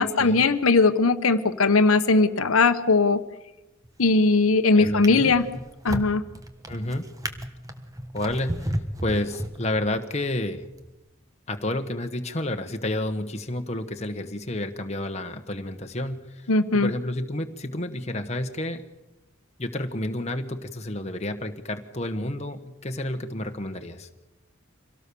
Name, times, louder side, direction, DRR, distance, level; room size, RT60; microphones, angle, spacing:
voice 1, 0.0-3.2 4.0-5.4 5.8-6.2 16.5-16.9, left 3 dB, 85° left, 9 dB, 1.1 m, -19 dB
Drawer open or close, 3.8-4.3 4.8-10.0 10.7-10.9, equal, 15° right, 1.3 m, -34 dB
voice 2, 4.7-5.3 6.7-7.0 8.1-8.7 9.0-10.6 11.5-16.5 16.7-18.8 19.6-24.1, left 1 dB, 30° left, 6 dB, 1.3 m, -30 dB
25.0 x 17.5 x 7.0 m, 1.0 s
head